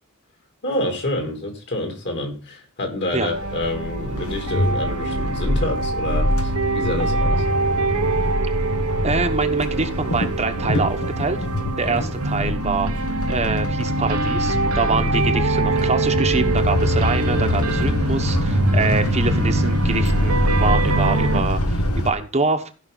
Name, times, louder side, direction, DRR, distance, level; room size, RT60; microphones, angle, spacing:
voice 1, 0.6-7.4 11.8-12.1 15.0-15.2 18.7-19.0, left 1 dB, 55° left, 3.2 m, -28 dB
sound 1, 3.3-22.1, left 1 dB, 80° left, 1.4 m, -24 dB
sound 2, 3.3-21.4, right 3 dB, 80° right, 1.1 m, -24 dB
voice 2, 9.0-11.4 11.8-12.9 13.3-22.7, right 4 dB, 30° right, 1.0 m, -25 dB
15.5 x 5.5 x 4.0 m
head